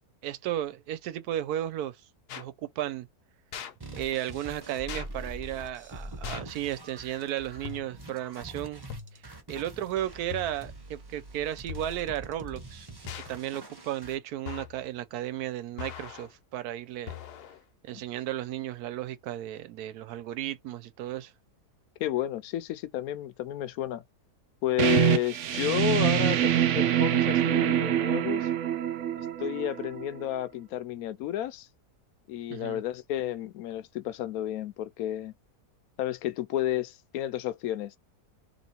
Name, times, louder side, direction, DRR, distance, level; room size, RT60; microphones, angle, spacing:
voice 1, 0.2-2.0 2.4-3.1 3.9-8.8 9.5-12.9 13.3-17.2 17.8-21.3 32.5-32.8, right 12 dB, 80° right, 1.1 m, -34 dB
sound 1, 2.3-2.5 3.5-3.7 4.9-5.1 6.2-6.6 7.6-8.1 8.9-9.3 10.3-10.7 11.7-12.1 13.1-13.4 14.5-14.8 15.8-16.3 17.1-17.6, left 9 dB, 90° left, 1.3 m, -41 dB
sound 2, 3.8-14.2, right 2 dB, 20° right, 0.7 m, -44 dB
voice 2, 22.0-24.0 24.6-28.5 29.2-31.7 32.3-35.3 36.0-38.0, left 13 dB, 70° left, 1.0 m, -31 dB
sound 3, 24.8-30.2, right 12 dB, 60° right, 0.8 m, -25 dB
3.0 x 2.9 x 4.2 m
omnidirectional pair, 1.7 m